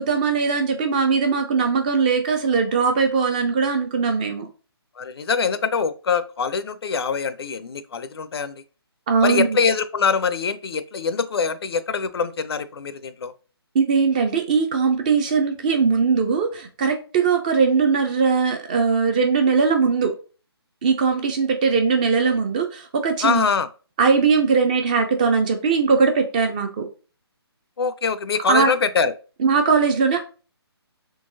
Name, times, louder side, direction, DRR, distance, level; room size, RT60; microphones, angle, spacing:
voice 1, 0.0-4.5 9.1-9.6 13.7-20.1 20.8-23.5 24.0-26.9 28.5-28.7 29.4-30.2, right 5 dB, 20° right, 5 dB, 0.4 m, -20 dB
voice 2, 5.0-8.6 9.2-13.3 23.2-23.7 27.8-29.1, left 5 dB, 65° left, 14 dB, 0.4 m, -24 dB
3.8 x 2.8 x 2.6 m, 0.35 s
hypercardioid pair, 155°, 14 cm